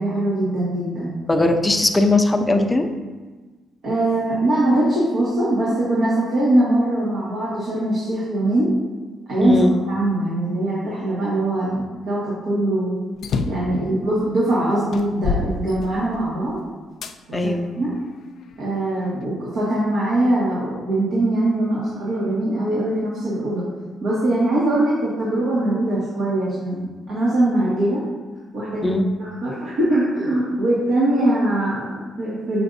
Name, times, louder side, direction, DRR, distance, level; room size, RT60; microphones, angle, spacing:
voice 1, 0.0-1.2 3.8-8.7 9.3-13.0 13.5-16.6 17.3-18.0 18.6-23.7 24.0-28.0 28.5-32.6, right 1 dB, 70° right, -8 dB, 1.7 m, -22 dB
voice 2, 1.3-2.9 9.4-9.7 17.3-17.7 28.8-29.0, left 2 dB, 15° left, 5 dB, 0.6 m, -18 dB
sound 1, 13.2-13.7 14.4-14.5 14.9-16.3 17.0-17.2 17.9-18.9, left 4 dB, 70° left, 0.4 m, -27 dB
6.6 x 5.7 x 2.7 m, 1.3 s
cardioid pair, 90°, 0 cm